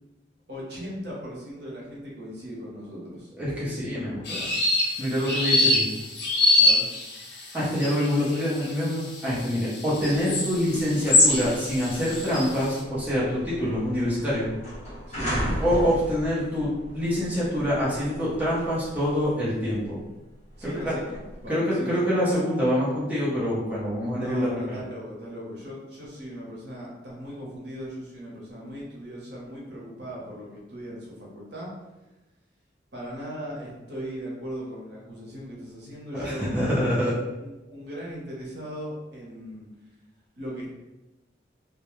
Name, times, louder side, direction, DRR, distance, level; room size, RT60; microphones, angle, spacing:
voice 1, 0.5-3.3 6.6-6.9 15.1-15.4 20.6-22.1 24.1-31.7 32.9-36.5 36.8-37.1 37.4-39.7 40.4-40.7, equal, 65° right, -4 dB, 0.8 m, -38 dB
voice 2, 3.4-4.5 5.0-5.9 7.5-14.5 15.6-20.0 20.6-20.9 21.5-24.8 36.1-37.1, equal, 10° right, -9 dB, 0.7 m, -26 dB
sound 1, 4.3-12.7, left 1 dB, 75° left, 0.5 m, -24 dB
sound 2, 10.7-21.5, equal, 35° left, 1.1 m, -37 dB
2.2 x 2.1 x 3.0 m, 1.0 s
head